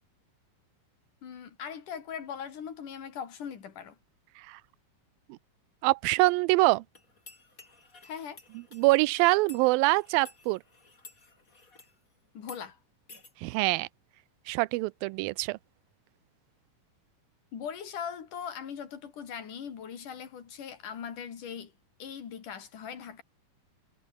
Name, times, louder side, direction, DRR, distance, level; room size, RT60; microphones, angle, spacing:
voice 1, 1.2-4.0 8.0-8.4 12.3-12.8 17.5-21.7 22.0-23.2, left 7 dB, 65° left, 4.3 m, -40 dB
voice 2, 5.8-6.8 8.7-10.6 13.4-13.9 14.5-15.6, right 22 dB, 85° right, 2.4 m, -24 dB
sound 1, 6.9-12.0 12.4-12.6 13.1-13.3, left 3 dB, 25° left, 3.7 m, -53 dB
omnidirectional pair, 4.1 m